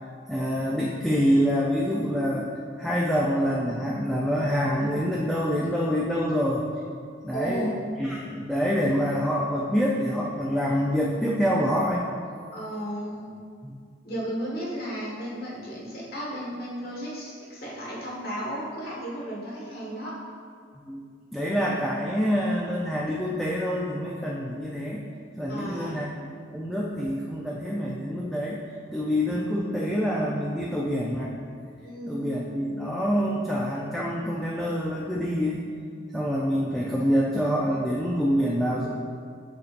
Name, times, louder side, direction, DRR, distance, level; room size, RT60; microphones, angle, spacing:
voice 1, 0.3-2.5 2.8-6.6 7.2-12.1 13.6-13.8 20.8-21.0 21.3-25.0 25.4-28.6 28.9-31.3 32.1-35.6 36.1-38.9, equal, ahead, -5 dB, 0.4 m, -26 dB
voice 2, 7.3-7.7 12.5-13.3 14.0-20.1 25.5-26.0 31.8-32.4, right 1 dB, 50° left, -5 dB, 1.6 m, -34 dB
6.8 x 6.6 x 2.5 m, 2.1 s
head